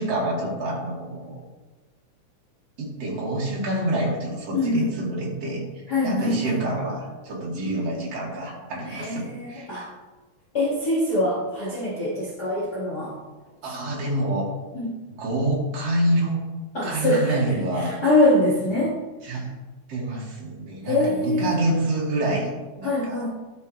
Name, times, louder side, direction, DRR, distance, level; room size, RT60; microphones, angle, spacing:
voice 1, 0.0-1.4 2.8-5.6 6.0-9.7 13.6-14.5 15.1-16.4 16.8-18.0 19.2-19.5 19.9-22.5 22.8-23.2, right 1 dB, 50° right, -4 dB, 3.3 m, -27 dB
voice 2, 4.5-4.9 5.9-6.6 8.9-9.9 10.5-13.1 14.7-14.9 16.7-17.4 17.7-18.9 20.8-21.6 22.8-23.3, left 1 dB, 35° left, -8 dB, 2.3 m, -23 dB
12.5 x 7.6 x 3.3 m, 1.2 s
omnidirectional pair, 3.8 m